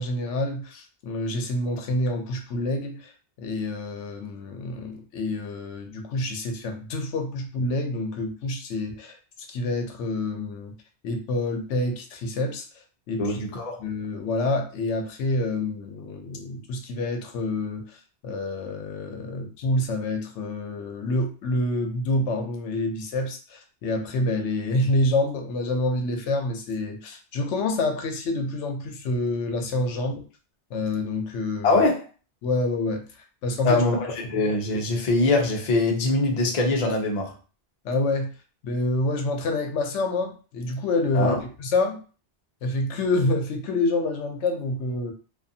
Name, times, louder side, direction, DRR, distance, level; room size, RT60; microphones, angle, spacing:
voice 1, 0.0-3.1 3.4-9.2 9.5-10.7 11.0-12.7 13.1-13.4 13.8-18.0 18.2-30.2 30.7-31.8 32.4-33.0 33.4-33.8 37.8-38.3 38.6-42.0 42.6-45.1, left 2 dB, 90° left, 4 dB, 0.9 m, -27 dB
voice 2, 13.2-13.8 31.6-32.0 33.6-37.3 41.1-41.4, left 2 dB, 45° left, 1 dB, 0.6 m, -23 dB
2.4 x 2.4 x 2.6 m, 0.37 s
omnidirectional pair, 1.2 m